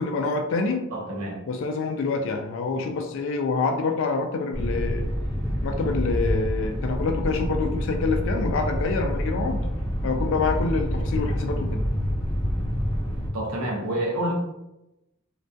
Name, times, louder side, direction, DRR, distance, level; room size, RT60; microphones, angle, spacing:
voice 1, 0.0-0.8 1.5-5.1 5.6-9.7 10.0-11.8, left 4 dB, 60° left, 5 dB, 0.3 m, -26 dB
voice 2, 0.9-1.4 13.3-14.3, right 1 dB, 80° right, -1 dB, 0.6 m, -28 dB
sound 1, 4.5-13.3, equal, 5° right, 0.6 m, -27 dB
2.2 x 2.2 x 2.5 m, 0.95 s
head